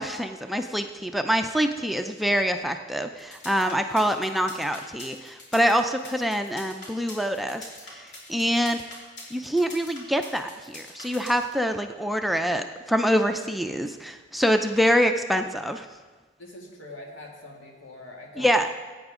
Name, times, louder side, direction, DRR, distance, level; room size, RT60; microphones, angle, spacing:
voice 1, 0.0-8.0 8.3-8.8 9.3-15.8 18.4-18.7, equal, ahead, 5 dB, 0.3 m, -25 dB
sound 1, 3.2-11.5, left 2 dB, 65° left, 3.0 m, -43 dB
voice 2, 16.4-18.5, left 2 dB, 90° left, -1 dB, 2.2 m, -43 dB
16.0 x 8.9 x 3.7 m, 1.4 s
head